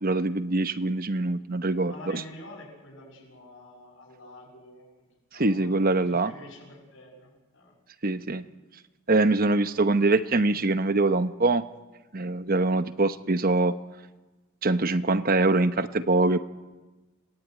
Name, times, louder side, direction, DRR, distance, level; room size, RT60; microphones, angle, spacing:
voice 1, 0.0-2.2 5.4-6.3 8.0-8.4 9.1-11.6 12.1-13.8 14.6-16.4, right 2 dB, 40° right, 11 dB, 0.9 m, -23 dB
voice 2, 1.8-7.7, left 2 dB, 55° left, -4 dB, 6.9 m, -47 dB
27.0 x 19.0 x 9.4 m, 1.2 s
head